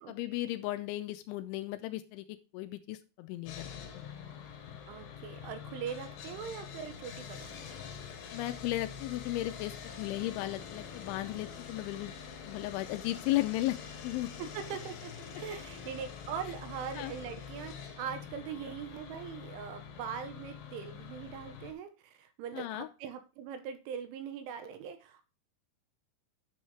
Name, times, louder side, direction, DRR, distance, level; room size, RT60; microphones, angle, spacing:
voice 1, 0.1-3.9 8.3-12.1 12.4-13.8 14.0-14.3 17.0-17.1 22.5-22.9, left 16 dB, 85° left, 9 dB, 2.9 m, -35 dB
Sawing, 3.5-21.7, left 7 dB, 70° left, 3.0 m, -45 dB
voice 2, 4.9-7.5 14.4-25.2, right 7 dB, 80° right, 8 dB, 3.4 m, -41 dB
10.0 x 7.1 x 3.2 m, 0.32 s
omnidirectional pair, 5.7 m